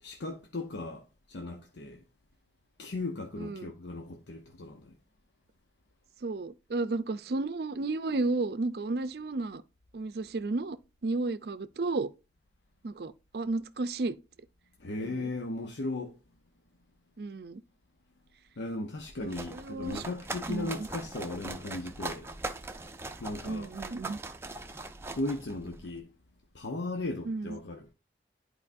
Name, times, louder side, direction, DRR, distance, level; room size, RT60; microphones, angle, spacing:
voice 1, 0.0-2.0 2.8-5.0 14.8-16.2 18.6-22.3 23.2-23.7 25.1-26.1 26.5-27.9, left 2 dB, 80° left, 0.8 m, -37 dB
voice 2, 3.4-3.7 6.2-9.6 9.9-10.8 11.0-12.1 12.8-14.2 15.0-15.3 17.2-17.6 19.2-20.0 20.5-20.9 23.4-24.2 27.2-27.6, right 3 dB, 60° right, 0.5 m, -33 dB
sound 1, 19.0-26.0, right 2 dB, 15° right, 0.5 m, -41 dB
11.0 x 4.6 x 2.6 m
head